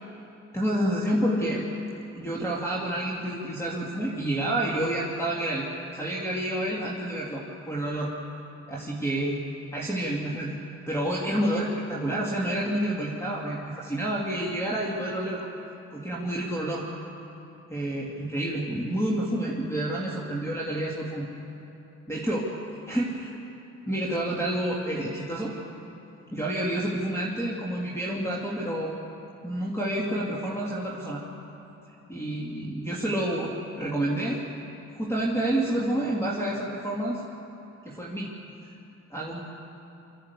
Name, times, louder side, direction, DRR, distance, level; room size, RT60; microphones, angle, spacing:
voice 1, 0.5-1.6 2.1-5.6 5.9-8.1 8.7-9.4 9.7-10.6 10.9-15.5 15.9-16.8 17.7-21.3 22.1-22.5 22.9-23.3 23.9-25.5 26.3-28.9 29.4-31.2 32.1-34.4 35.0-37.2 37.8-38.3 39.1-39.4, right 1 dB, 10° left, -4 dB, 2.7 m, -29 dB
24.0 x 14.0 x 8.4 m, 3.0 s
cardioid pair, 90°, 30 cm